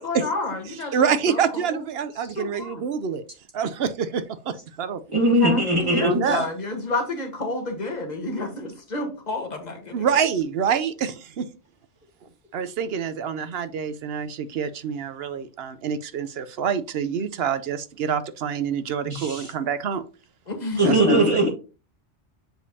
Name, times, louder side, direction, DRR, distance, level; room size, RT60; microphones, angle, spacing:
voice 1, 0.0-1.8 2.4-2.8 5.4-10.0 20.5-20.8 21.1-21.2, left 3 dB, 40° left, 1.4 m, -30 dB
voice 2, 0.7-3.2 3.5-5.0 6.0-6.5 8.6-8.7 9.9-11.5 12.5-20.0 20.8-21.4, right 7 dB, 65° right, 0.8 m, -26 dB
voice 3, 5.1-6.4 19.1-19.5 20.8-21.5, right 1 dB, 25° right, 1.6 m, -20 dB
7.5 x 5.1 x 2.7 m
omnidirectional pair, 1.2 m